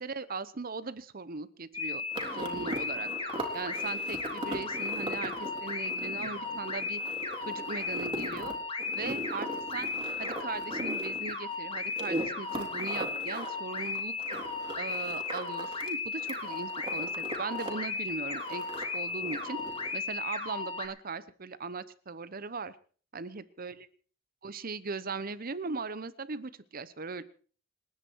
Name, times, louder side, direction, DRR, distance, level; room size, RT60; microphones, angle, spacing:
voice 1, 0.0-2.0 2.3-3.1 3.5-7.0 7.4-8.5 8.9-9.9 10.2-14.1 14.7-18.6 18.9-19.6 19.9-22.8 23.1-23.9 24.4-27.2, right 4 dB, 50° right, 15 dB, 1.0 m, -39 dB
sound 1, 1.7-20.9, left 4 dB, 30° left, 2.4 m, -35 dB
sound 2, 2.1-15.9 16.2-17.7 18.0-19.9, right 1 dB, 25° right, 3.4 m, -40 dB
28.0 x 9.9 x 4.7 m, 0.43 s
head